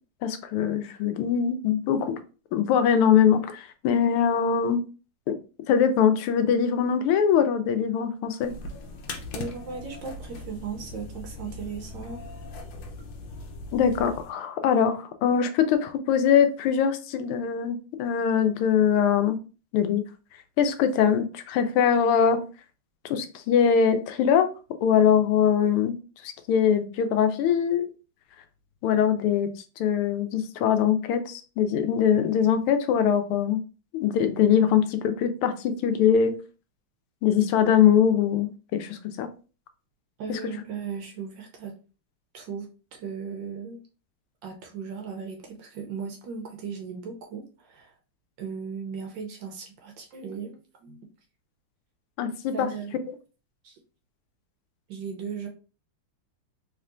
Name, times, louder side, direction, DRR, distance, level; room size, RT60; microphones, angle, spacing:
voice 1, 0.2-2.1 2.5-4.8 5.3-5.4 5.7-8.5 13.7-19.4 19.7-20.0 20.6-22.4 23.0-24.5 24.8-26.0 26.2-27.9 28.8-29.5 29.8-33.6 33.9-36.3 37.2-39.3 40.3-40.4 52.2-52.7, left 8 dB, 85° left, 9 dB, 1.5 m, -22 dB
sound 1, 8.4-14.3, left 2 dB, 70° left, 1.3 m, -39 dB
voice 2, 9.3-12.2 40.2-41.7 42.3-43.8 44.4-47.9 48.4-51.0 52.5-53.1 53.6-53.8 54.9-55.5, right 6 dB, 70° right, 3 dB, 1.2 m, -37 dB
3.5 x 3.2 x 2.5 m, 0.34 s
omnidirectional pair, 2.4 m